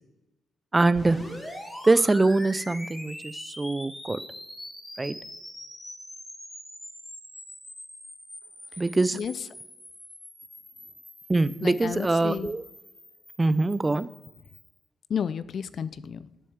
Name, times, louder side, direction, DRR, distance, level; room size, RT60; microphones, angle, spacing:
voice 1, 0.7-1.2 1.9-4.2 5.0-5.1 8.8-9.2 11.3-12.6 13.4-14.1, right 2 dB, 25° right, 16 dB, 0.5 m, -23 dB
sound 1, 0.9-14.8, left 1 dB, 15° left, 3.6 m, -43 dB
voice 2, 11.6-12.5 15.1-16.3, left 7 dB, 65° left, 16 dB, 0.5 m, -31 dB
7.7 x 6.5 x 7.2 m, 1.0 s
supercardioid pair, 55°, 0 cm